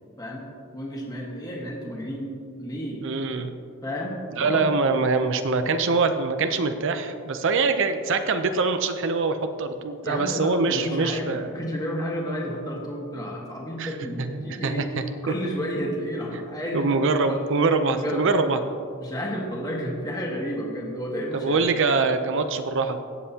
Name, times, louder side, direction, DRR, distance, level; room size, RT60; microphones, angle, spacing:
voice 1, 0.7-2.3 2.6-3.0 3.8-4.7 10.0-14.9 15.2-17.4 17.8-18.3 19.0-21.7, equal, 20° left, -2 dB, 1.6 m, -31 dB
voice 2, 3.0-3.5 4.4-11.5 13.8-13.9 14.2-15.3 16.3-16.4 16.7-18.6 21.3-23.0, right 4 dB, 60° right, 8 dB, 0.6 m, -24 dB
18.0 x 7.6 x 2.9 m, 2.3 s
head